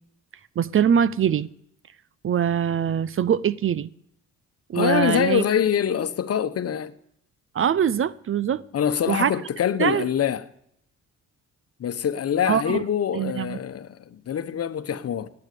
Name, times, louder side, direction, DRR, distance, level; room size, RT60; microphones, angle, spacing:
voice 1, 0.6-1.5 2.2-3.9 4.7-5.4 7.5-8.6 9.1-9.3 9.8-10.1 12.5-12.8 13.1-13.6, right 8 dB, 45° right, 0.7 m, -22 dB
voice 2, 4.7-6.9 8.7-10.4 11.8-15.3, left 9 dB, 50° left, 1.2 m, -24 dB
17.5 x 9.7 x 6.9 m
cardioid pair, 90°, 30 cm